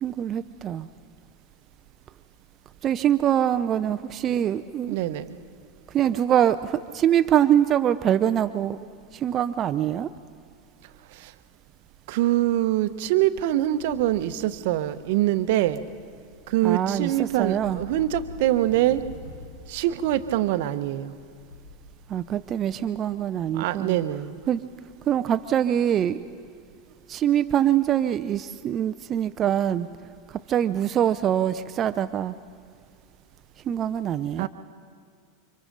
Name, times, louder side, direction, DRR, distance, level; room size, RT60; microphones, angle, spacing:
voice 1, 0.0-0.9 2.8-5.0 5.9-8.8 9.1-10.1 16.6-17.8 22.1-24.0 24.5-24.6 25.1-26.3 27.1-29.9 30.3-32.3 33.6-34.5, right 10 dB, 35° right, 11 dB, 0.7 m, -24 dB
voice 2, 4.9-5.4 11.1-11.3 12.1-15.8 16.5-19.0 19.7-21.1 23.5-24.4 34.4-34.5, right 14 dB, 60° right, 11 dB, 1.0 m, -24 dB
sound 1, 13.7-23.9, left 1 dB, 75° left, 2.5 m, -46 dB
29.5 x 25.0 x 4.0 m, 2.2 s
hypercardioid pair, 90°, 0 cm